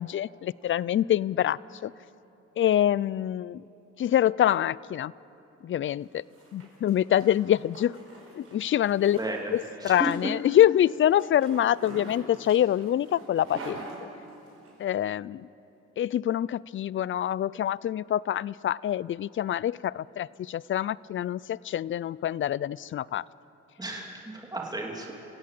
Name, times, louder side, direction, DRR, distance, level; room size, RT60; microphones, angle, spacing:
voice 1, 0.0-1.9 2.6-3.6 4.0-5.1 5.6-6.2 6.5-8.0 8.3-9.2 9.5-13.8 14.8-15.5 16.0-23.2, left 11 dB, 40° left, 22 dB, 0.4 m, -25 dB
Zipper (clothing), 6.0-14.7, right 2 dB, 50° right, 5.6 m, -46 dB
voice 2, 9.2-9.5 9.8-10.3 23.8-25.1, right 2 dB, 15° right, 0 dB, 2.9 m, -33 dB
26.5 x 16.5 x 7.6 m, 2.9 s
cardioid pair, 90°, 30 cm